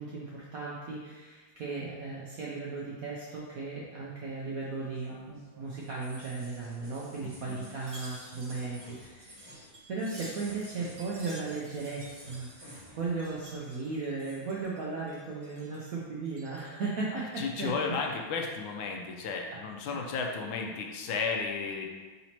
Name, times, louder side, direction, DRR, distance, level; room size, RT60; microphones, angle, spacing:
voice 1, 0.0-9.4 9.9-17.8, right 3 dB, 75° right, -5 dB, 0.8 m, -36 dB
sound 1, 4.2-13.3 13.6-14.5, equal, 20° right, 1.2 m, -53 dB
voice 2, 7.2-7.6 17.4-21.9, left 5 dB, 85° left, 1 dB, 1.4 m, -33 dB
Wind chime, 7.7-14.8 15.1-15.9 16.2-16.8 17.2-18.1 18.5-18.7, right 1 dB, 40° right, 0.6 m, -52 dB
4.1 x 2.8 x 4.3 m, 1.3 s
omnidirectional pair, 2.2 m